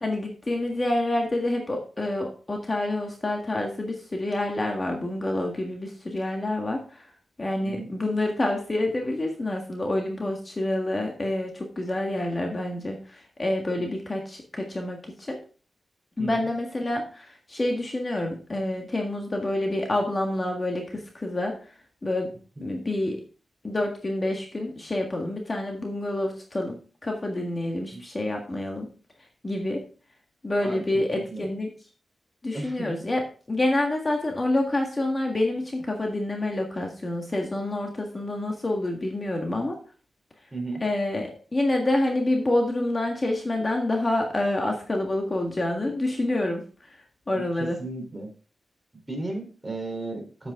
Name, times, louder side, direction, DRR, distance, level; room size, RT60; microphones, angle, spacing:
voice 1, 0.0-7.1 7.4-15.4 16.2-21.6 22.0-22.3 22.6-23.2 23.6-26.8 27.0-28.9 29.4-29.8 30.4-31.7 32.4-39.8 40.8-47.0 47.3-47.8, left 1 dB, 30° left, 2 dB, 1.7 m, -27 dB
voice 2, 31.1-31.5 32.5-33.0 40.5-40.8 47.3-48.3 48.9-50.5, right 2 dB, 15° right, 1 dB, 3.7 m, -35 dB
8.7 x 8.2 x 3.7 m, 0.38 s
wide cardioid pair, 90°, 0 cm